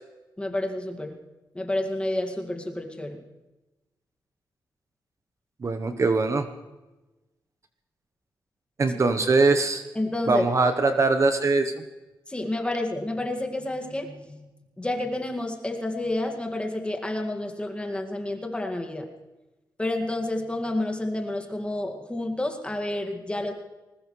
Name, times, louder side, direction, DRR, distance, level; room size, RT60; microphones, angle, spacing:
voice 1, 0.4-1.2 1.6-3.2 10.0-10.4 12.3-14.5 14.8-19.1 19.8-23.5, left 1 dB, 15° left, 3 dB, 2.0 m, -29 dB
voice 2, 5.6-6.5 8.8-9.8 10.3-11.8, right 3 dB, 40° right, 8 dB, 1.0 m, -22 dB
20.5 x 19.0 x 3.2 m, 1.1 s
cardioid pair, 90°, 8 cm